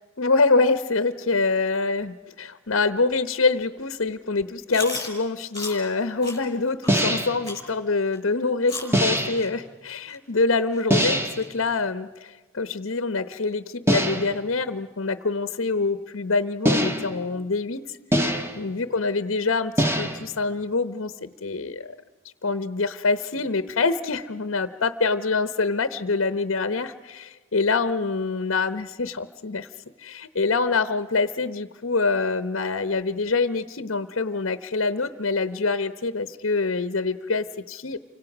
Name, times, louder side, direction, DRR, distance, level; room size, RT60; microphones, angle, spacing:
voice 1, 0.2-22.0 22.4-29.7 30.0-38.0, left 3 dB, 70° left, 12 dB, 0.9 m, -25 dB
Chewing mastication, 4.7-5.1 5.5-5.8 6.2-6.4 6.8-7.0 7.4-7.6 8.1-8.2 8.7-8.9 9.4-9.5 10.1-10.2 10.7-10.8 11.4-11.5, left 3 dB, 15° left, 5.9 m, -34 dB
sound 1, 6.9-7.4 8.9-9.5 10.9-11.5 13.9-14.4 16.6-17.3 18.1-18.7 19.8-20.3, equal, 10° right, 1.5 m, -23 dB
29.0 x 25.5 x 6.0 m, 1.3 s
head